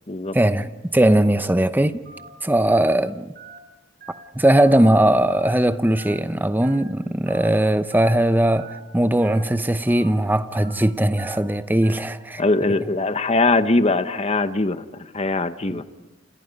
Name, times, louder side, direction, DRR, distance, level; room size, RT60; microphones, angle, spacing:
voice 1, 0.3-2.0 2.4-3.3 4.3-12.8 15.7-15.8, right 1 dB, 10° right, 0.8 m, -19 dB
Telephone, 2.1-2.3 2.7-2.9 3.4-3.6 4.0-4.2 4.7-4.9 5.3-5.5 6.0-6.2 6.6-6.8 7.3-7.5 7.9-8.1 8.6-8.8 9.2-9.5 9.9-10.1 10.5-10.8 11.2-11.4 11.8-12.1, right 5 dB, 50° right, 4.7 m, -43 dB
voice 2, 12.4-15.8, left 2 dB, 35° left, 1.0 m, -21 dB
29.0 x 28.0 x 5.3 m
head